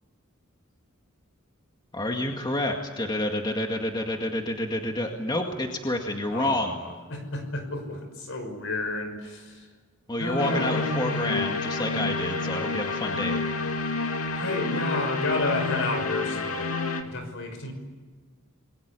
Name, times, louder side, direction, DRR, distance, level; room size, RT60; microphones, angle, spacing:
voice 1, 1.9-6.8 10.1-13.4, left 1 dB, 20° left, 2 dB, 2.0 m, -29 dB
voice 2, 6.3-9.7 10.2-11.2 14.3-17.7, left 2 dB, 65° left, 7 dB, 5.8 m, -31 dB
sound 1, 10.4-17.0, left 3 dB, 90° left, 2.5 m, -29 dB
29.0 x 22.0 x 8.4 m, 1.4 s
head